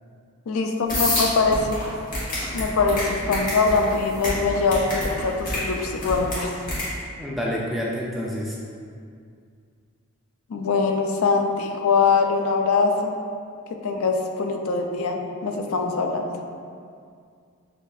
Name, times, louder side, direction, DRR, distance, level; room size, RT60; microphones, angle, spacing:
voice 1, 0.5-1.8 2.5-6.5 10.5-13.1 13.8-16.2, left 4 dB, 75° left, 3 dB, 0.4 m, -23 dB
sound 1, 0.9-6.9, left 1 dB, 35° left, 1.1 m, -28 dB
voice 2, 7.2-8.6, equal, ahead, -5 dB, 0.3 m, -28 dB
6.6 x 2.6 x 2.4 m, 2.2 s
head